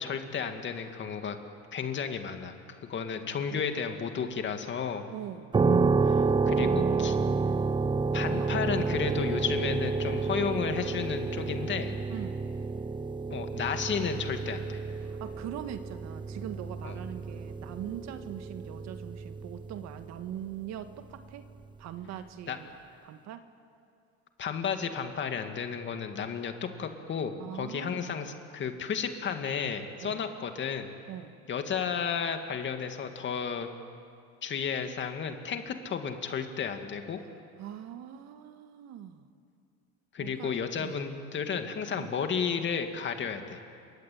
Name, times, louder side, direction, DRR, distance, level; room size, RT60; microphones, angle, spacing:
voice 1, 0.0-1.4 1.7-2.6 2.9-5.1 6.1-7.2 8.1-11.9 13.3-14.8 16.8-17.0 22.5-22.6 24.4-30.9 31.5-33.7 34.4-37.2 40.1-43.6, left 6 dB, 40° left, 6 dB, 2.4 m, -33 dB
voice 2, 5.1-5.6 6.5-7.4 8.4-8.5 12.1-12.5 15.0-21.5 21.8-22.7 23.0-23.4 27.4-28.2 30.0-30.2 31.1-31.4 37.6-39.3 40.2-41.0 42.0-42.2, right 10 dB, 60° right, 9 dB, 1.7 m, -42 dB
sound 1, 5.5-20.2, right 4 dB, 15° right, 0.6 m, -30 dB
27.0 x 23.5 x 8.8 m, 2.4 s
cardioid pair, 125°, 31 cm